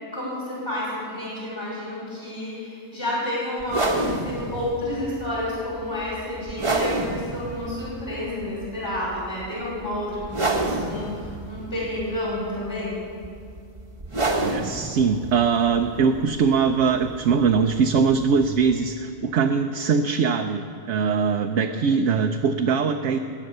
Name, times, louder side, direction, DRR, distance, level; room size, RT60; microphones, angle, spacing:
voice 1, 0.1-13.0, left 1 dB, 45° left, -7 dB, 5.3 m, -30 dB
sound 1, 3.6-18.9, right 2 dB, 25° right, 1.1 m, -30 dB
voice 2, 14.4-23.2, right 5 dB, 65° right, 5 dB, 1.0 m, -22 dB
20.5 x 8.6 x 6.7 m, 2.3 s
omnidirectional pair, 1.4 m